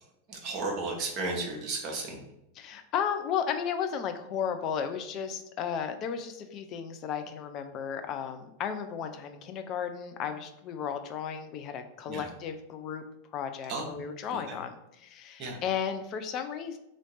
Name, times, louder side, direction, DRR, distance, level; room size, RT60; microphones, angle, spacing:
voice 1, 0.3-2.2 12.1-12.3 13.7-13.9 14.5-14.6 15.4-15.6, right 3 dB, 35° right, -1 dB, 0.8 m, -34 dB
voice 2, 2.6-13.0 13.3-16.8, left 7 dB, 35° left, 7 dB, 0.4 m, -34 dB
3.0 x 2.7 x 4.1 m, 0.87 s
figure-of-eight pair, 90°, 0 cm